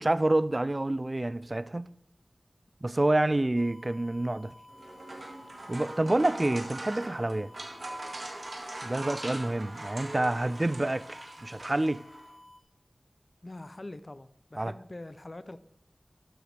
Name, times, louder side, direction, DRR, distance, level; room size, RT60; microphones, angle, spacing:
voice 1, 0.0-1.9 2.8-4.5 5.7-7.5 8.8-12.0 14.6-14.7, right 2 dB, 35° right, 0.3 m, -28 dB
sound 1, 3.6-12.6, left 1 dB, 65° left, 1.9 m, -53 dB
sound 2, 4.7-12.3, right 2 dB, 75° right, 1.8 m, -41 dB
voice 2, 13.4-15.6, left 2 dB, 40° left, 0.6 m, -44 dB
13.0 x 7.8 x 3.4 m
wide cardioid pair, 65°, 0 cm